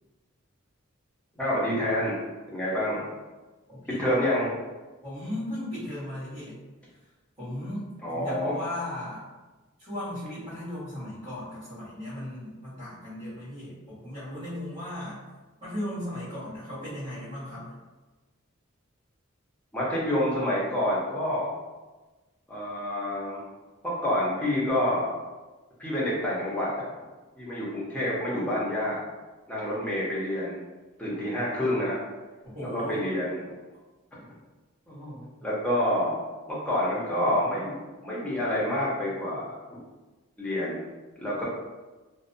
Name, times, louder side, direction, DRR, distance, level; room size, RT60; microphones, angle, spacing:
voice 1, 1.4-2.2 2.5-3.1 4.0-4.5 8.0-8.6 19.7-21.5 22.5-23.4 23.8-25.1 25.8-26.9 27.4-29.0 29.5-30.6 31.0-32.0 32.7-33.4 34.9-36.2 36.5-39.8 40.4-40.8 41.2-41.4, left 1 dB, 5° left, -7 dB, 0.6 m, -28 dB
voice 2, 3.7-4.2 5.0-6.6 7.4-9.2 9.8-15.2 15.6-17.8 32.4-33.0, left 1 dB, 20° right, -17 dB, 1.3 m, -36 dB
2.6 x 2.1 x 2.5 m, 1.2 s
head